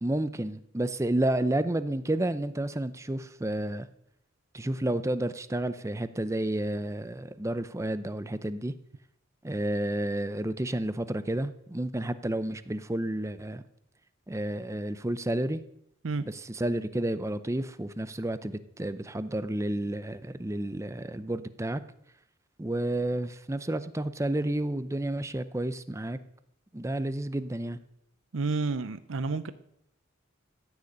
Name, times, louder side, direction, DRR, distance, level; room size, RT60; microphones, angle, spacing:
voice 1, 0.0-3.9 4.5-8.7 9.4-13.6 14.3-15.6 16.3-21.8 22.6-26.2 26.7-27.8, right 1 dB, 15° right, 13 dB, 0.5 m, -31 dB
voice 2, 28.3-29.5, right 3 dB, 70° right, 12 dB, 0.6 m, -30 dB
15.0 x 6.7 x 8.6 m, 0.75 s
head